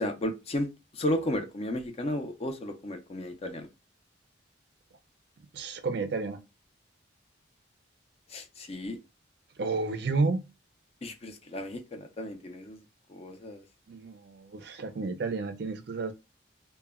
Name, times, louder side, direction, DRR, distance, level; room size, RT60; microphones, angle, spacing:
voice 1, 0.0-3.7 8.3-9.0 11.0-12.8 13.1-13.6, left 1 dB, 30° left, 0.4 m, -34 dB
voice 2, 5.5-6.4 9.6-10.4 13.9-16.1, right 3 dB, 55° right, 0.4 m, -31 dB
2.1 x 2.1 x 3.4 m
head